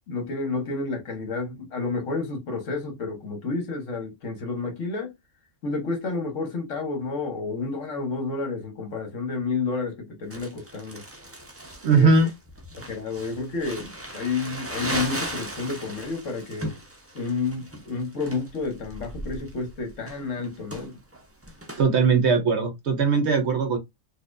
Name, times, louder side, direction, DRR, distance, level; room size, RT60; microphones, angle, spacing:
voice 1, 0.1-5.1 5.6-11.0 11.9-12.1 12.8-16.7 17.1-21.0, left 4 dB, 60° left, 1.3 m, -30 dB
Crumpling crinkling, 10.3-21.8, right 1 dB, 20° right, 0.4 m, -37 dB
voice 2, 11.8-12.3 21.8-23.8, right 4 dB, 60° right, 0.8 m, -20 dB
4.1 x 2.6 x 2.5 m
omnidirectional pair, 1.5 m